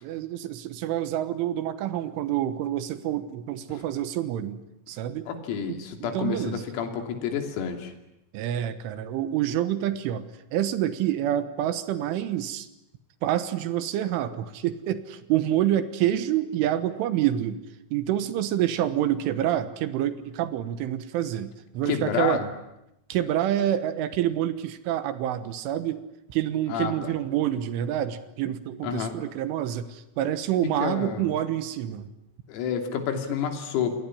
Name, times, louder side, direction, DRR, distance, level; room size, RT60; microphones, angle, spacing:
voice 1, 0.0-5.3 5.7-6.7 8.3-10.3 10.5-12.7 13.2-17.6 17.9-22.4 23.1-26.0 26.3-32.1, right 11 dB, 75° right, 12 dB, 3.6 m, -27 dB
voice 2, 5.3-7.9 21.9-22.5 26.7-27.1 28.8-29.1 30.8-31.3 32.5-34.0, left 7 dB, 85° left, 5 dB, 5.6 m, -29 dB
28.0 x 21.5 x 9.8 m, 0.86 s
omnidirectional pair, 5.9 m